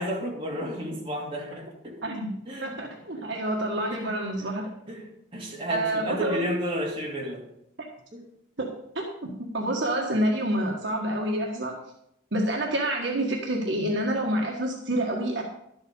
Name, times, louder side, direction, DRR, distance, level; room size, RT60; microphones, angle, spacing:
voice 1, 0.0-2.0 2.5-2.7 3.9-4.1 4.9-7.4 8.1-8.3, equal, 25° right, -3 dB, 2.6 m, -32 dB
voice 2, 2.0-4.6 5.7-6.5 7.8-7.9 8.6-8.7 8.9-11.8 12.3-15.4, right 1 dB, 60° right, 0 dB, 1.5 m, -28 dB
11.5 x 7.8 x 5.3 m, 0.77 s
head